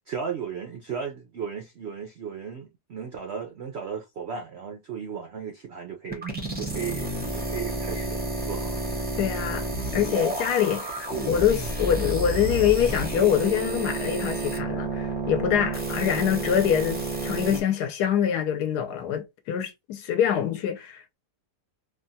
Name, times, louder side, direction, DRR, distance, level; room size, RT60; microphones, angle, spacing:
voice 1, 0.0-6.3 6.6-8.8, right 6 dB, 75° right, 0.6 m, -35 dB
sound 1, 6.1-17.6, right 2 dB, 15° right, 0.4 m, -30 dB
voice 2, 9.2-9.7 9.9-21.1, left 9 dB, 75° left, 1.2 m, -25 dB
3.3 x 2.2 x 2.6 m
omnidirectional pair, 1.8 m